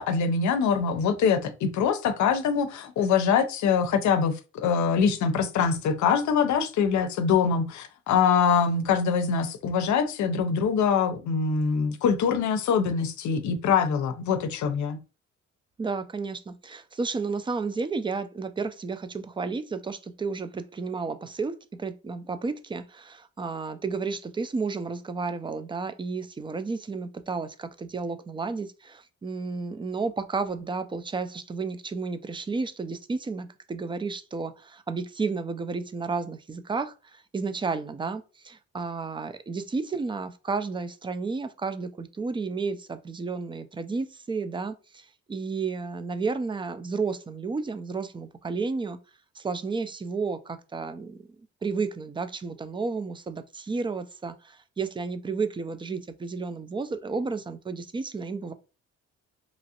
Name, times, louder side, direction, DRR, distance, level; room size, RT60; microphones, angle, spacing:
voice 1, 0.0-15.0, left 6 dB, 70° left, 0.6 m, -24 dB
voice 2, 15.8-49.0 49.4-51.3 51.6-58.5, right 4 dB, 15° right, 0.3 m, -32 dB
3.0 x 2.5 x 2.8 m
cardioid pair, 90°, 30 cm